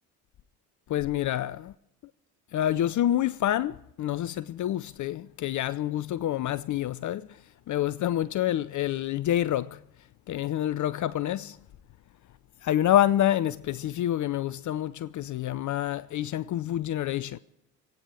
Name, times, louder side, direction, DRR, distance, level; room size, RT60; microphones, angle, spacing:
voice 1, 0.9-1.7 2.5-7.3 7.7-9.8 10.3-11.6 12.6-17.4, left 12 dB, 40° left, 0.6 m, -27 dB
26.5 x 9.2 x 4.9 m
hypercardioid pair, 55°, 47 cm